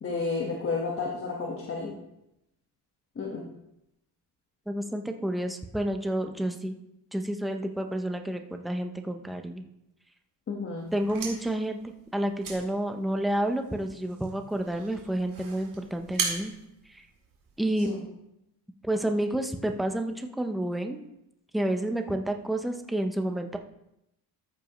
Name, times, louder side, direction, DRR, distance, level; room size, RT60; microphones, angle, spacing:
voice 1, 0.0-2.0 3.1-3.4 10.5-10.9 17.8-18.0, left 4 dB, 30° left, -2 dB, 1.3 m, -31 dB
voice 2, 4.7-6.7 7.1-9.6 10.9-11.8 12.1-16.5 16.9-17.0 17.6-17.9 18.8-21.0 21.5-23.6, right 1 dB, ahead, 5 dB, 0.5 m, -30 dB
sound 1, 10.8-17.7, right 5 dB, 50° right, 2.1 m, -39 dB
13.5 x 7.1 x 3.0 m, 0.84 s
cardioid pair, 170°, 41 cm